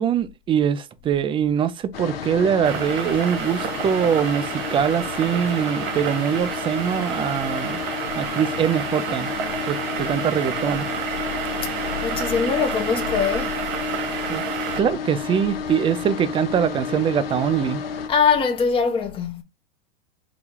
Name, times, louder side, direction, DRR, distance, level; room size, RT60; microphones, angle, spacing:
voice 1, 0.0-7.8 8.2-9.3 9.6-10.9 14.3-14.4 14.8-17.8, right 8 dB, 20° right, 0.4 m, -23 dB
sound 1, 1.9-18.1, left 7 dB, 75° left, 0.8 m, -31 dB
sound 2, 2.6-14.8, right 8 dB, 60° right, 0.9 m, -30 dB
voice 2, 12.0-13.6 18.1-19.4, left 6 dB, 20° left, 0.7 m, -22 dB
4.0 x 2.3 x 4.4 m
hypercardioid pair, 100°, 30 cm